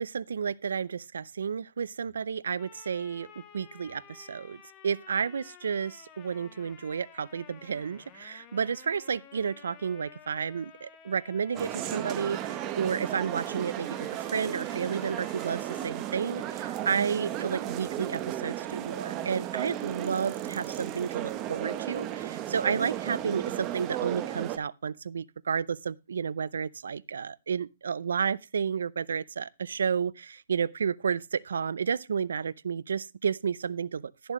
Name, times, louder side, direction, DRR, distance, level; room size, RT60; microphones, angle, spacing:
voice 1, 0.0-3.3 3.5-4.6 4.8-34.3, right 6 dB, 85° right, 0.6 m, -31 dB
sound 1, 2.6-15.9, left 8 dB, 20° left, 1.6 m, -53 dB
sound 2, 11.5-24.6, right 12 dB, 20° right, 0.9 m, -35 dB
12.0 x 11.0 x 3.1 m
hypercardioid pair, 165°, 0 cm